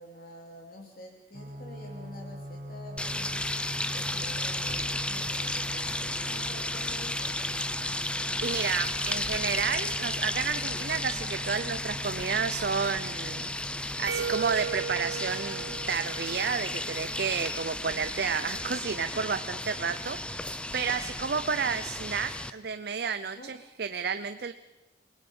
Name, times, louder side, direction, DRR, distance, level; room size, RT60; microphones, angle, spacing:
voice 1, 0.0-3.6 3.9-7.4 21.0-21.2 23.4-23.6, left 1 dB, 55° left, 1 dB, 2.8 m, -47 dB
sound 1, 1.3-17.5, equal, 45° right, 2.2 m, -43 dB
sound 2, 3.0-22.5, left 1 dB, 5° left, 0.7 m, -33 dB
voice 2, 8.4-13.5 14.0-24.5, right 6 dB, 60° right, 10 dB, 0.6 m, -31 dB
sound 3, 14.1-16.9, right 7 dB, 90° right, 0.8 m, -36 dB
28.0 x 19.0 x 5.5 m, 1.1 s
head